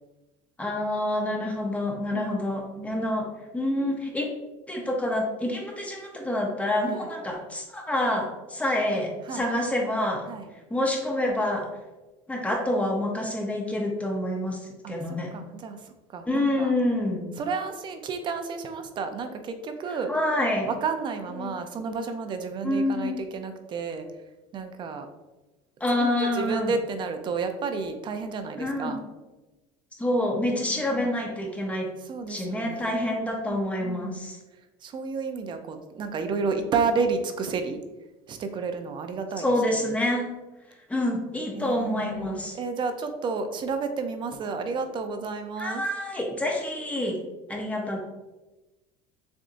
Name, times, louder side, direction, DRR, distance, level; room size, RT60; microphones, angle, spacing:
voice 1, 0.6-3.3 3.5-4.3 4.7-10.3 10.7-11.7 12.3-14.6 14.9-15.3 16.3-17.3 20.1-20.7 21.4-21.5 22.6-23.2 25.8-26.7 28.6-29.0 30.0-31.9 32.3-34.4 39.4-40.3 40.9-42.6 45.6-47.2 47.5-48.0, left 1 dB, 10° left, 0 dB, 0.8 m, -27 dB
voice 2, 2.8-3.1 6.9-7.1 9.3-9.5 10.3-10.5 14.8-15.0 15.3-15.8 16.1-16.7 17.4-20.1 20.7-24.1 24.5-25.1 26.0-29.0 30.7-31.1 32.1-33.0 33.5-34.2 34.8-37.8 38.3-39.5 41.6-45.8, right 4 dB, 35° right, 7 dB, 0.5 m, -31 dB
6.8 x 2.6 x 2.5 m, 1.1 s
cardioid pair, 125°, 13 cm